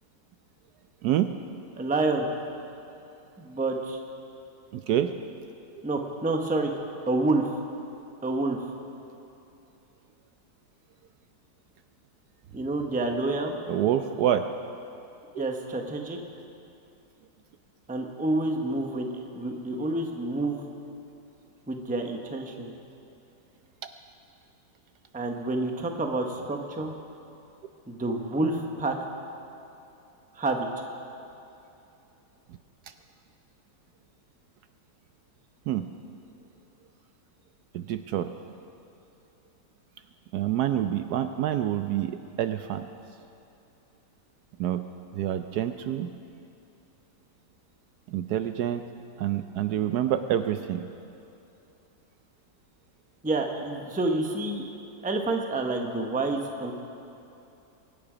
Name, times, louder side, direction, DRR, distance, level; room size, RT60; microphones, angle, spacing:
voice 1, 1.8-2.3 3.4-4.0 5.8-6.7 7.1-7.5 8.2-8.6 12.5-13.6 15.4-16.2 17.9-20.6 21.7-22.7 25.1-26.9 27.9-28.9 30.4-30.7 53.2-54.7 55.0-56.7, right 2 dB, 5° right, 3 dB, 0.7 m, -28 dB
voice 2, 4.7-5.1 13.7-14.5 15.3-15.5 35.7-35.9 37.7-38.3 40.3-42.9 44.6-44.8 45.1-46.1 48.1-48.8 49.2-50.8, right 11 dB, 70° right, 9 dB, 1.0 m, -27 dB
23.5 x 9.9 x 5.0 m, 2.8 s
omnidirectional pair, 1.9 m